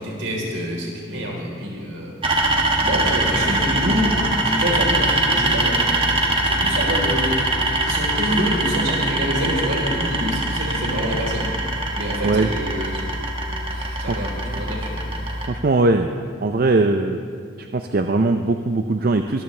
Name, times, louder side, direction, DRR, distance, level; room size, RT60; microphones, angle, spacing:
voice 1, 0.0-2.1 2.8-4.2 4.4-6.0 6.4-7.5 7.8-11.5 11.9-13.0 13.7-15.0, equal, 70° right, -2 dB, 3.8 m, -26 dB
sound 1, 2.2-15.5, right 2 dB, 25° right, 1.5 m, -22 dB
voice 2, 15.5-16.1 16.4-17.2 17.6-19.4, right 2 dB, 45° right, 7 dB, 0.5 m, -20 dB
22.5 x 14.0 x 3.3 m, 2.2 s
head